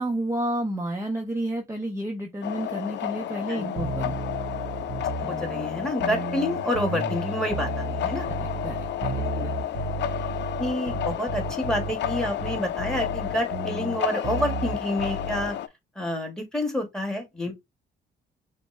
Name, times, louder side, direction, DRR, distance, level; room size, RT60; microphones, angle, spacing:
voice 1, 0.0-4.1 8.4-9.2, right 1 dB, 15° right, 0.7 m, -30 dB
sound 1, 2.4-15.7, left 11 dB, 65° left, 0.4 m, -31 dB
sound 2, 3.8-15.6, right 4 dB, 70° right, 1.1 m, -33 dB
voice 2, 5.2-8.3 9.3-9.5 10.6-15.5 15.9-17.5, equal, 5° left, 1.5 m, -29 dB
5.2 x 2.2 x 3.2 m
cardioid pair, 90°, 20 cm